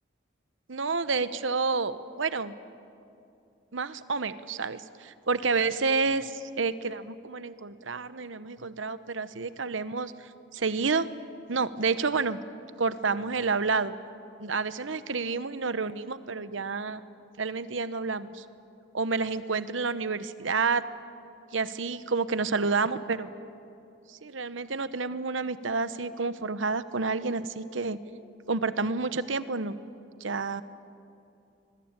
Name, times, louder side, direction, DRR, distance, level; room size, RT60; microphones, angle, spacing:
voice 1, 0.7-2.5 3.7-11.1 11.5-12.4 12.8-13.9 14.4-17.0 17.4-18.4 18.9-20.8 21.5-23.3 24.1-28.0 28.5-29.8 30.2-30.6, right 4 dB, 80° right, 13 dB, 1.0 m, -29 dB
26.0 x 22.0 x 9.0 m, 2.7 s
head